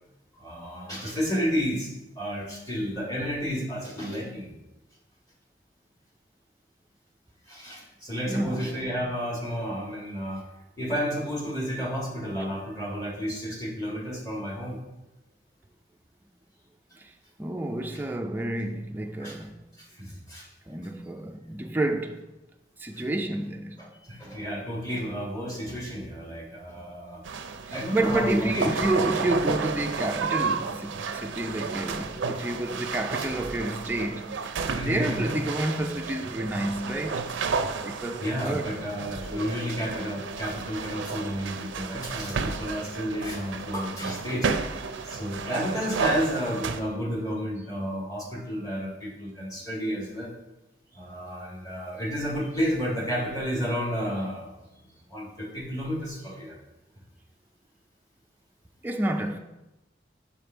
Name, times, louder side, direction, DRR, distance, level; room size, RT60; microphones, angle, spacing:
voice 1, 0.3-4.5 7.5-10.4 10.8-14.8 19.2-19.4 19.8-20.5 22.9-23.0 23.8-27.2 27.7-28.7 32.7-32.9 33.2-33.3 34.7-35.4 38.2-44.5 45.1-50.3 50.9-54.6 55.1-56.6, equal, 20° left, 1.6 m, -31 dB
voice 2, 8.3-8.7 17.0-17.1 17.4-19.5 20.7-22.2 22.8-23.8 27.7-37.3 37.8-38.8 58.8-59.4, right 1 dB, 10° right, 0.4 m, -29 dB
sound 1, 27.2-46.8, right 5 dB, 85° right, 0.5 m, -32 dB
5.7 x 5.2 x 4.4 m
head